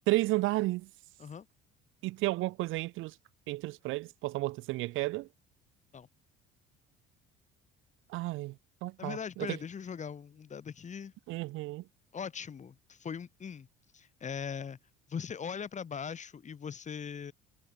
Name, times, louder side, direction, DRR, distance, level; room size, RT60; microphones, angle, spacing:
voice 1, 0.1-0.9 2.0-3.1 3.5-5.3 8.1-8.5 8.8-9.5 11.3-11.8, right 19 dB, 75° right, 1.3 m, -32 dB
voice 2, 9.0-11.1 12.1-13.7 13.9-14.8 15.1-17.3, left 7 dB, 35° left, 3.9 m, -40 dB
supercardioid pair, 95°, 21 cm